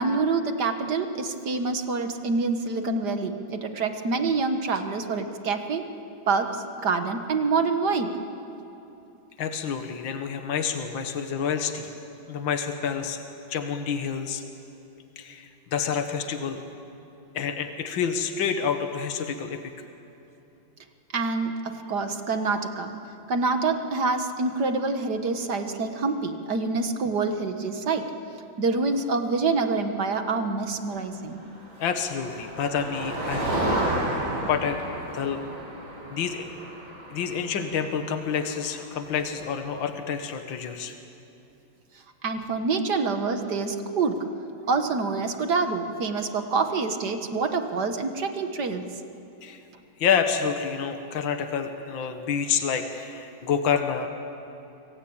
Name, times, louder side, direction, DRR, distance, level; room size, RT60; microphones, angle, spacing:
voice 1, 0.0-5.9 6.3-8.1 21.1-22.9 23.3-28.1 28.6-31.4 42.2-44.2 44.7-48.8, right 4 dB, 55° right, 7 dB, 2.0 m, -26 dB
voice 2, 9.4-11.9 12.3-13.2 13.5-14.4 15.2-16.6 17.3-19.7 31.8-34.0 34.5-34.8 35.1-35.4 36.1-36.5 37.1-40.9 49.4-49.6 50.0-54.1, left 7 dB, 65° left, 6 dB, 2.2 m, -28 dB
Motor vehicle (road), 31.5-39.3, right 1 dB, 70° right, 5.8 m, -32 dB
26.5 x 24.5 x 8.8 m, 2.8 s
omnidirectional pair, 2.3 m